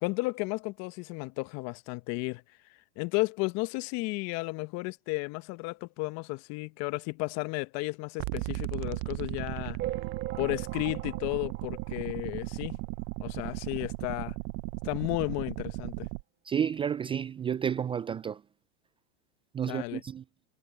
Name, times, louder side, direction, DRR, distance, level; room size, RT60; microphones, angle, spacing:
voice 1, 0.0-2.4 3.0-9.8 10.4-12.8 13.2-14.4 14.8-16.1 19.7-20.0, left 25 dB, 50° left, 1.1 m, -33 dB
sound 1, 8.2-16.2, right 27 dB, 55° right, 0.9 m, -36 dB
sound 2, 9.8-12.6 13.1-13.2 13.4-13.6 13.8-13.9 14.8-14.9 15.4-15.5, right 13 dB, 35° right, 1.9 m, -40 dB
voice 2, 16.5-18.4 19.5-20.2, right 8 dB, 15° right, 0.4 m, -31 dB
hypercardioid pair, 105°, 33 cm